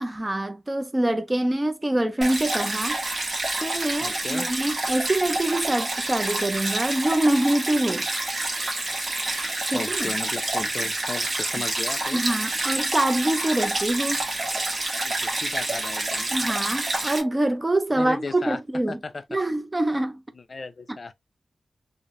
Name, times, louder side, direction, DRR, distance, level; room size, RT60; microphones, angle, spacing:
voice 1, 0.0-3.0 3.6-8.1 9.7-10.1 12.1-14.2 16.3-19.0 19.3-20.2 20.9-21.0, right 1 dB, 25° right, 0.4 m, -25 dB
Stream, 2.2-17.2, right 2 dB, 50° right, 1.0 m, -28 dB
voice 2, 4.0-4.5 9.7-12.2 15.0-16.3 18.0-18.6 18.9-19.2 20.4-21.1, left 3 dB, 55° left, 0.4 m, -35 dB
3.2 x 2.0 x 2.5 m
wide cardioid pair, 80°, 0 cm